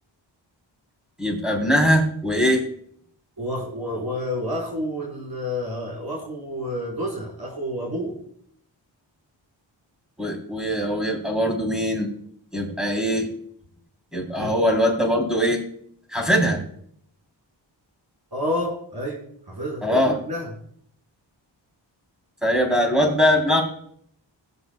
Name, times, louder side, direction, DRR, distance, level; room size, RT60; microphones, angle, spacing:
voice 1, 1.2-2.6 10.2-12.1 12.5-13.3 14.1-15.6 16.1-16.6 19.8-20.1 22.4-23.6, equal, ahead, 0 dB, 3.6 m, -21 dB
voice 2, 3.4-8.2 14.4-14.5 18.3-20.5, equal, 50° right, -4 dB, 5.0 m, -29 dB
20.0 x 8.1 x 2.3 m, 0.65 s
wide cardioid pair, 75°, 46 cm